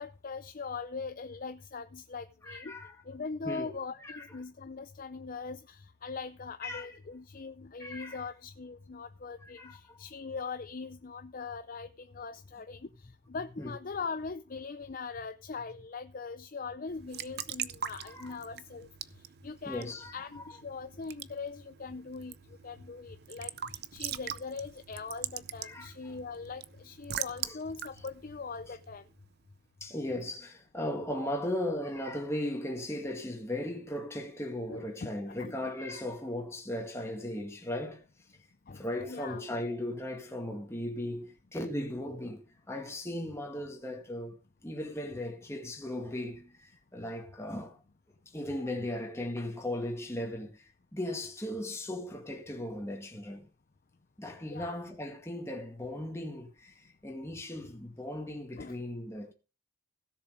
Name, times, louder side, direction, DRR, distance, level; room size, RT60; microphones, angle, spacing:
voice 1, 0.0-2.7 3.1-12.9 13.3-18.9 19.4-22.3 22.6-23.5 23.9-29.0 34.7-35.6 38.7-39.4 54.4-54.8 58.6-58.8, left 4 dB, 40° left, 0.5 m, -41 dB
voice 2, 2.4-3.0 3.4-4.2 6.6-6.9 7.8-8.2 9.4-10.0 13.6-13.8 18.0-18.4 19.7-20.4 25.6-26.2 27.4-27.6 29.8-38.0 38.7-44.4 44.6-47.8 48.3-53.5 54.2-59.3, left 1 dB, 15° left, 2.0 m, -37 dB
Raindrop / Drip / Trickle dribble, 16.9-29.3, right 10 dB, 50° right, 0.6 m, -42 dB
16.0 x 7.2 x 5.1 m
head